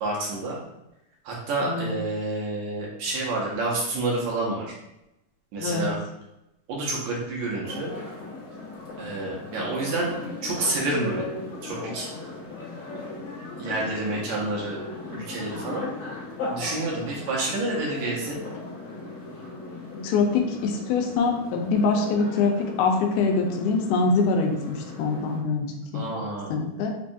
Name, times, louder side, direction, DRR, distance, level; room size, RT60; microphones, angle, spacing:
voice 1, 0.0-0.6 1.2-4.7 5.5-6.0 6.7-7.9 9.0-11.3 11.6-12.1 13.6-14.8 15.1-15.9 16.5-18.4 25.9-26.5, right 2 dB, 75° right, -4 dB, 1.9 m, -29 dB
sound 1, 7.6-25.4, left 3 dB, 55° left, 1.5 m, -37 dB
voice 2, 19.9-26.1 26.5-26.9, left 4 dB, 85° left, 3 dB, 2.1 m, -24 dB
5.2 x 2.3 x 2.6 m, 0.89 s
omnidirectional pair, 3.7 m